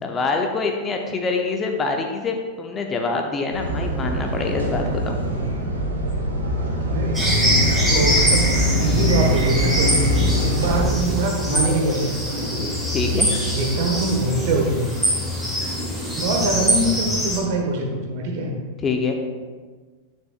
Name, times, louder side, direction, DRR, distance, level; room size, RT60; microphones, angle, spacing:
voice 1, 0.0-5.2 12.9-13.3 18.8-19.1, left 4 dB, 20° left, 3 dB, 0.7 m, -25 dB
sound 1, 3.5-10.8, equal, 75° right, 1.3 m, -24 dB
voice 2, 6.8-10.1 10.4-12.5 13.4-14.9 16.2-18.5, right 2 dB, 50° right, 1 dB, 1.3 m, -24 dB
sound 2, 7.1-17.4, equal, 5° right, 1.9 m, -23 dB
9.6 x 6.4 x 2.4 m, 1.4 s
figure-of-eight pair, 90°, 0 cm